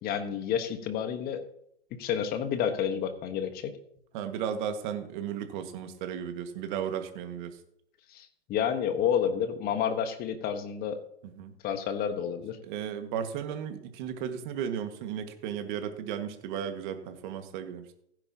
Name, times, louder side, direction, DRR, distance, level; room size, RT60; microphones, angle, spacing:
voice 1, 0.0-1.4 2.0-3.7 8.1-11.0 11.6-12.6, left 8 dB, 30° left, 9 dB, 1.3 m, -30 dB
voice 2, 4.1-7.6 11.2-11.5 12.6-17.9, right 8 dB, 45° right, 7 dB, 1.8 m, -35 dB
16.0 x 10.0 x 2.9 m, 0.72 s
hypercardioid pair, 125°, 33 cm